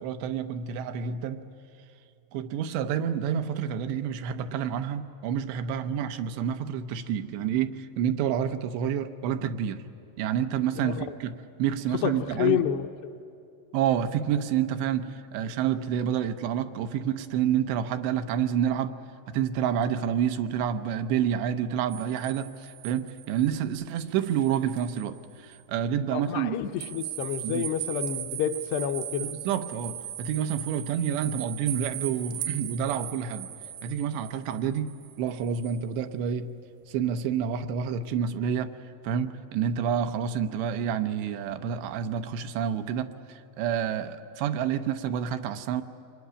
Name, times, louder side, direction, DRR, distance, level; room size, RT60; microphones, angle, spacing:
voice 1, 0.0-1.5 2.3-9.8 10.2-12.6 13.7-18.9 19.3-26.6 27.4-27.7 29.2-33.5 33.8-34.9 35.2-36.5 36.9-38.7 39.0-45.8, right 8 dB, 90° right, 8 dB, 3.2 m, -28 dB
voice 2, 10.8-11.1 12.0-12.9 26.1-29.4, left 9 dB, 75° left, 6 dB, 2.8 m, -29 dB
sound 1, 21.9-25.1 25.5-25.6 26.8-35.8, right 11 dB, 70° right, 2.3 m, -38 dB
26.0 x 23.0 x 9.8 m, 2.6 s
omnidirectional pair, 4.9 m